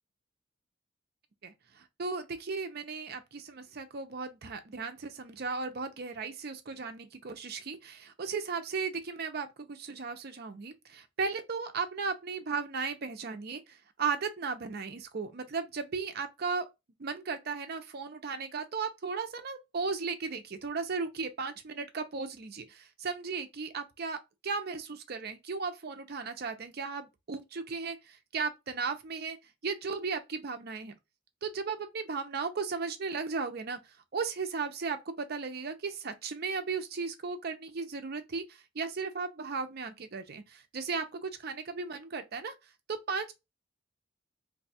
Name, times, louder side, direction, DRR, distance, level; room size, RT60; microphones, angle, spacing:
voice 1, 1.4-16.6 17.0-29.4 29.6-30.9 31.4-33.8 34.1-42.6 42.9-43.3, right 5 dB, 55° right, 0.6 m, -36 dB
2.6 x 2.3 x 4.1 m
head